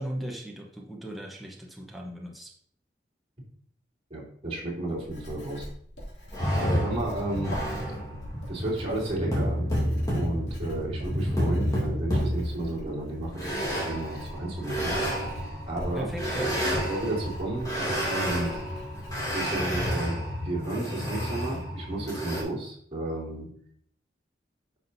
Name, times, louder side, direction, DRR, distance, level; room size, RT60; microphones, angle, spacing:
voice 1, 0.0-2.5 6.5-6.7 15.9-16.6, equal, ahead, -2 dB, 0.9 m, -37 dB
voice 2, 4.1-5.7 6.5-7.5 8.5-9.7 10.1-14.9 15.7-16.1 16.9-18.5 19.3-23.5, right 1 dB, 35° right, -5 dB, 3.2 m, -32 dB
Writing, 4.9-20.0, equal, 80° left, 2.6 m, -43 dB
sound 1, 6.3-22.4, equal, 20° left, 2.5 m, -30 dB
9.9 x 6.0 x 2.7 m, 0.62 s
head